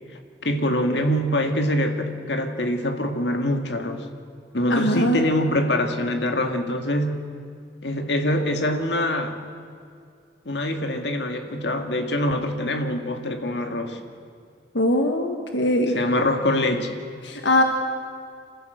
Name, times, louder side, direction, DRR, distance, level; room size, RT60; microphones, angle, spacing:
voice 1, 0.4-4.1 4.5-7.3 7.8-9.4 10.5-14.0 15.9-17.0, left 1 dB, 75° left, 5 dB, 2.0 m, -24 dB
voice 2, 4.7-5.2 14.7-16.0 17.2-17.6, left 1 dB, 90° left, 4 dB, 1.6 m, -21 dB
27.0 x 15.0 x 7.9 m, 2.3 s
head